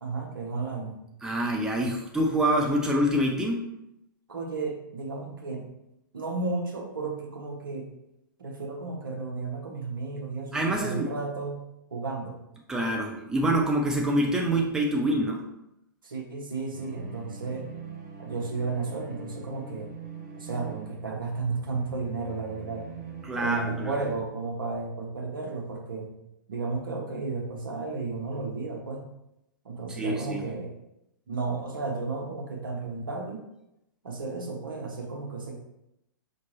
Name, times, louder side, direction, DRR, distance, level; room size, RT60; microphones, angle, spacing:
voice 1, 0.0-1.0 4.3-5.7 6.1-7.9 8.4-11.6 11.9-12.4 16.0-17.7 18.2-19.9 20.4-22.9 23.4-26.1 26.5-29.0 29.6-30.8 31.3-33.4 34.0-35.5, right 3 dB, 75° right, 0 dB, 1.1 m, -33 dB
voice 2, 1.2-3.7 10.5-11.1 12.7-15.4 23.2-24.0 29.9-30.5, right 1 dB, 5° right, -1 dB, 0.5 m, -26 dB
sound 1, 16.7-24.2, right 4 dB, 40° right, 0.8 m, -43 dB
5.7 x 2.9 x 3.1 m, 0.85 s
figure-of-eight pair, 115°, 11 cm